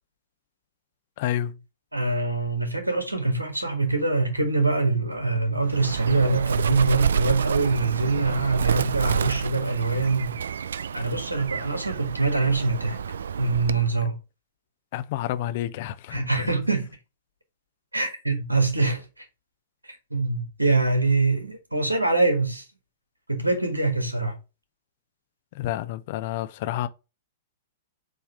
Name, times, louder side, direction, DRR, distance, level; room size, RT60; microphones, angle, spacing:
voice 1, 1.2-1.6 14.9-16.5 25.5-26.9, left 12 dB, 45° left, 0.7 m, -29 dB
voice 2, 1.9-10.3 10.9-13.0 13.4-14.2 16.1-16.9 17.9-19.3 19.9-22.6 23.3-24.4, right 3 dB, 85° right, 2.0 m, -24 dB
Bird, 5.7-13.9, right 7 dB, 65° right, 0.3 m, -29 dB
7.2 x 3.6 x 5.6 m
figure-of-eight pair, 105°, 0 cm